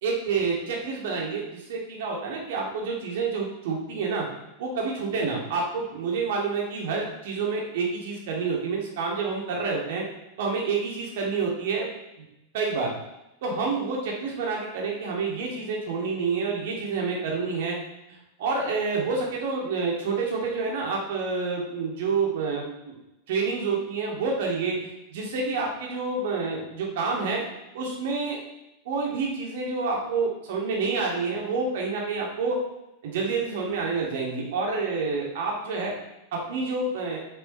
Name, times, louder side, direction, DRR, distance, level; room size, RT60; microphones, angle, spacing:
voice 1, 0.0-4.3 4.6-10.0 10.4-11.9 12.5-12.9 13.4-17.8 18.1-23.0 23.3-27.4 27.7-28.4 28.8-32.6 33.0-35.9 36.3-37.2, right 4 dB, 55° right, -2 dB, 2.4 m, -28 dB
9.6 x 8.5 x 3.2 m, 0.93 s
figure-of-eight pair, 90°, 0 cm